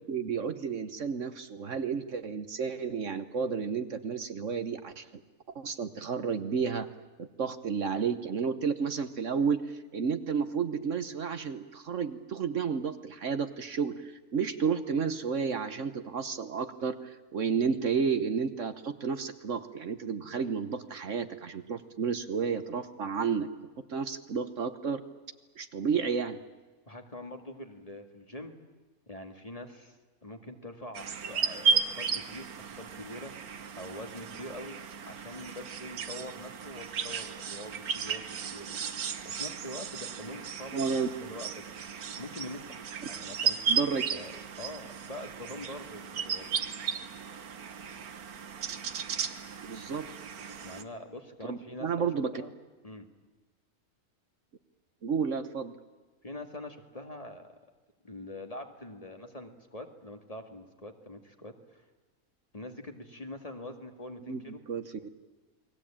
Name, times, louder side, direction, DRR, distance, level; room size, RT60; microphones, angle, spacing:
voice 1, 0.0-5.2 5.5-6.9 7.2-23.5 23.9-25.0 25.6-26.4 40.7-41.1 43.7-44.0 49.6-50.1 51.5-52.3 55.0-55.7 64.3-64.4 64.7-64.9, right 6 dB, 60° right, 10 dB, 1.4 m, -31 dB
voice 2, 26.9-28.6 29.1-32.5 32.7-33.3 33.7-34.8 35.1-38.8 39.2-41.7 42.2-42.8 43.1-43.8 44.1-46.6 50.6-52.5 52.8-53.1 56.2-57.5 58.0-61.8 62.5-64.6, left 1 dB, 25° left, 5 dB, 2.1 m, -44 dB
sound 1, 30.9-50.8, right 6 dB, 85° right, 1.7 m, -35 dB
29.5 x 21.0 x 8.8 m, 1.3 s
omnidirectional pair, 1.5 m